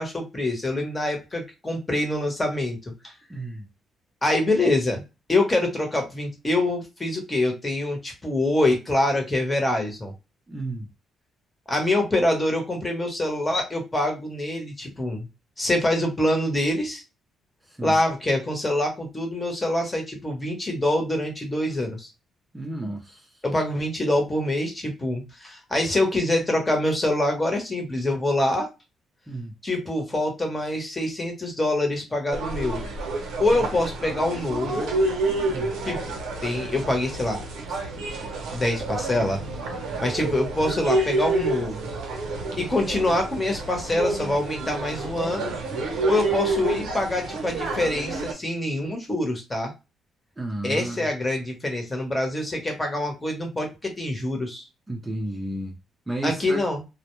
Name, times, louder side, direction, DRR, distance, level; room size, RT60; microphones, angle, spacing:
voice 1, 0.0-2.8 3.0-3.1 4.2-5.0 5.3-10.1 11.7-15.3 15.6-17.0 17.8-22.1 23.4-28.7 29.6-32.8 33.4-34.9 35.8-36.2 36.4-37.4 38.5-39.4 40.0-41.9 42.6-45.5 46.0-49.7 50.6-54.6 56.2-56.8, left 1 dB, 20° left, 1.0 m, -25 dB
voice 2, 3.3-3.7 10.5-10.9 17.7-18.0 22.5-23.4 29.3-29.5 33.5-33.7 35.5-35.7 50.4-51.1 54.9-55.8 56.1-56.6, right 1 dB, 15° right, 0.6 m, -32 dB
sound 1, 32.3-48.3, right 2 dB, 80° right, 0.7 m, -29 dB
2.2 x 2.1 x 3.0 m
cardioid pair, 90°, 0 cm